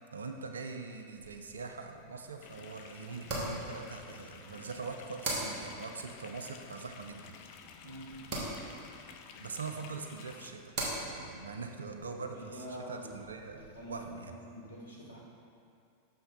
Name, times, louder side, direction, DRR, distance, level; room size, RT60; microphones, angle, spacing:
voice 1, 0.1-7.3 9.4-10.7 11.0-14.3, right 4 dB, 70° right, 5 dB, 0.4 m, -42 dB
sound 1, 1.2-14.0, right 1 dB, 40° right, 1.6 m, -43 dB
sound 2, 2.4-10.5, left 6 dB, 45° left, 0.4 m, -52 dB
voice 2, 12.1-13.1 13.5-15.2, right 1 dB, 80° left, -6 dB, 1.6 m, -46 dB
6.8 x 5.7 x 3.9 m, 2.5 s
figure-of-eight pair, 90°, 0 cm